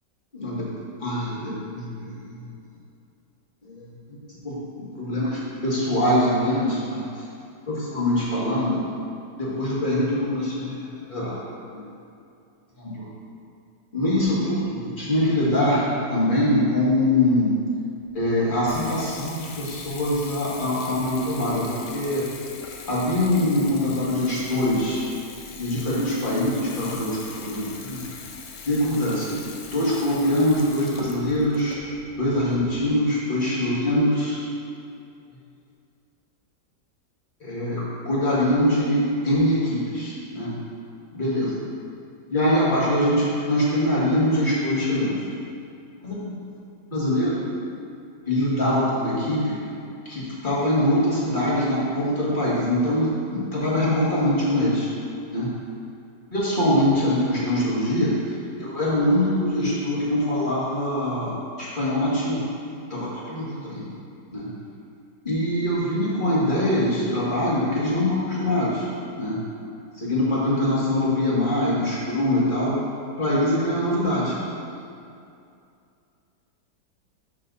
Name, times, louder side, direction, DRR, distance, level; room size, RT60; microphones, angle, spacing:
voice 1, 0.3-0.7 1.0-2.4 3.6-3.8 4.4-7.1 7.7-8.8 9.4-10.8 11.1-11.4 11.7-11.8 12.8-13.1 13.9-17.6 18.1-22.2 22.9-25.0 25.5-27.2 27.4-28.0 28.6-31.8 32.2-34.4 37.4-40.6 41.1-41.6 42.3-45.3 46.0-46.3 46.9-47.4 48.3-49.6 50.1-54.9 55.3-55.5 56.3-62.5 62.9-63.9 64.3-64.5 65.2-68.9 69.2-69.4 70.0-72.8 73.2-74.3, left 1 dB, 30° left, -8 dB, 1.9 m, -23 dB
Water tap faucet / Bathtub (filling or washing) / Trickle dribble, 18.0-32.9, left 4 dB, 80° left, 1.4 m, -40 dB
11.5 x 3.9 x 4.0 m, 2.5 s
omnidirectional pair, 1.8 m